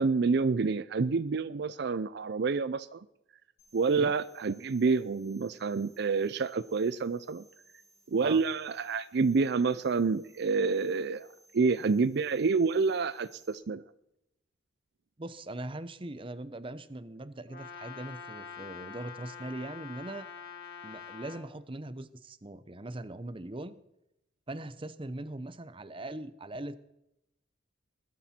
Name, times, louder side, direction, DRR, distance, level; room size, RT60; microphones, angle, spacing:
voice 1, 0.0-3.0 3.7-7.4 8.1-11.3 11.5-13.8, right 4 dB, 60° right, 15 dB, 0.5 m, -28 dB
sound 1, 3.6-13.6, right 1 dB, 40° left, 5.3 m, -63 dB
voice 2, 15.2-20.3 20.8-23.8 24.5-26.7, right 2 dB, 25° right, 14 dB, 0.8 m, -41 dB
Brass instrument, 17.5-21.5, left 7 dB, 55° left, 3.0 m, -45 dB
20.5 x 12.5 x 4.3 m, 0.85 s
head